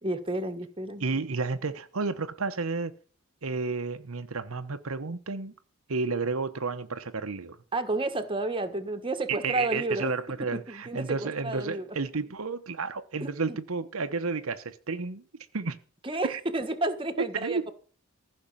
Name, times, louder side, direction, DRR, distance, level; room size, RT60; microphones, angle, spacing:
voice 1, 0.0-1.0 7.7-10.1 10.5-11.9 13.2-13.6 16.0-17.7, right 2 dB, 25° right, 1.5 m, -31 dB
voice 2, 1.0-2.9 3.4-5.5 5.9-7.6 9.3-15.2 15.5-15.8 16.2-16.4 17.3-17.7, right 4 dB, 85° right, 1.0 m, -31 dB
15.0 x 6.4 x 8.8 m
head